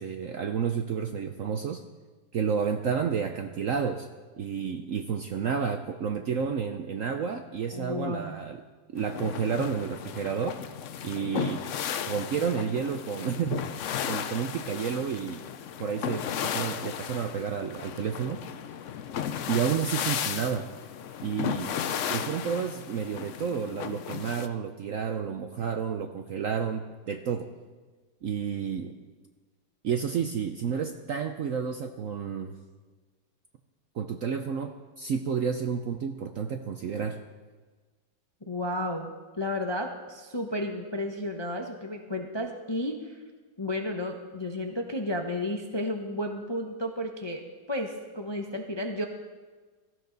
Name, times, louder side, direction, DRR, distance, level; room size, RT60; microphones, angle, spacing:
voice 1, 0.0-1.8 2.3-4.1 4.4-8.6 8.9-10.6 11.0-11.6 12.1-13.7 14.1-15.4 15.8-18.4 19.5-20.7 21.2-21.7 22.1-27.5 28.2-28.9 29.8-32.5 33.9-37.2, right 7 dB, 65° right, 7 dB, 0.8 m, -30 dB
voice 2, 7.7-8.4 38.5-39.1 39.4-43.2 43.6-47.4 47.7-49.0, left 1 dB, 25° left, 3 dB, 0.6 m, -32 dB
sound 1, 9.0-24.5, left 9 dB, 70° left, 0.7 m, -35 dB
17.0 x 14.5 x 4.0 m, 1.4 s
omnidirectional pair, 2.0 m